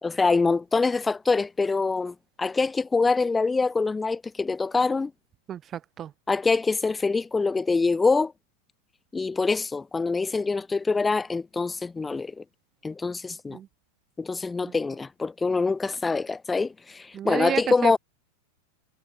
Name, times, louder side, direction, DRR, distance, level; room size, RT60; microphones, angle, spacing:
voice 1, 0.0-5.1 6.3-8.3 9.1-12.4 12.8-13.6 14.2-18.0, left 4 dB, 10° left, 1.4 m, -25 dB
voice 2, 5.5-6.1 13.5-13.7 14.7-14.8 17.1-18.0, right 10 dB, 25° right, 1.4 m, -31 dB
figure-of-eight pair, 90°, 0 cm